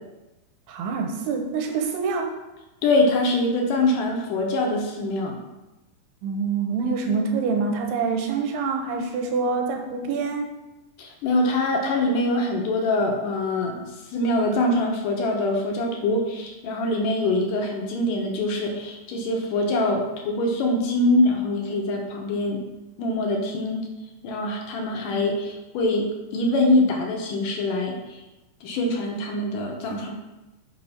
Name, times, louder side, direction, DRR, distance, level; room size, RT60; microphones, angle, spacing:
voice 1, 0.7-2.3 6.2-10.5, right 4 dB, 85° right, 3 dB, 3.0 m, -26 dB
voice 2, 2.8-5.4 11.0-22.6 23.0-23.9 24.2-26.1 26.3-28.2 28.6-30.1, left 2 dB, 70° left, 1 dB, 2.2 m, -24 dB
6.8 x 5.2 x 5.6 m, 1.0 s
omnidirectional pair, 4.7 m